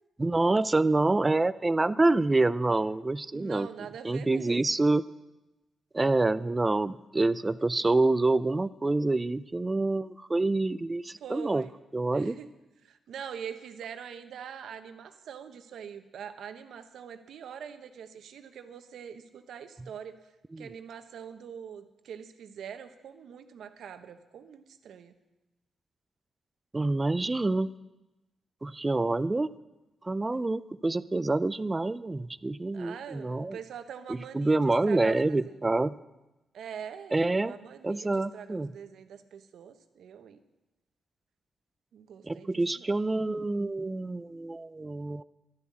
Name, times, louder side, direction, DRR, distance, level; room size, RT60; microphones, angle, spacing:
voice 1, 0.2-3.7 4.0-5.0 5.9-11.6 11.9-12.4 20.5-20.7 26.7-27.7 28.6-29.5 30.0-33.6 34.1-36.0 37.1-37.5 37.8-38.7 42.2-45.2, right 2 dB, 20° right, 16 dB, 0.4 m, -27 dB
voice 2, 3.3-4.6 11.2-11.7 12.1-12.5 12.8-20.3 20.6-25.1 32.7-35.6 36.5-40.4 41.9-42.9, right 8 dB, 80° right, 9 dB, 1.0 m, -44 dB
11.5 x 11.0 x 7.5 m, 1.0 s
cardioid pair, 75°, 0 cm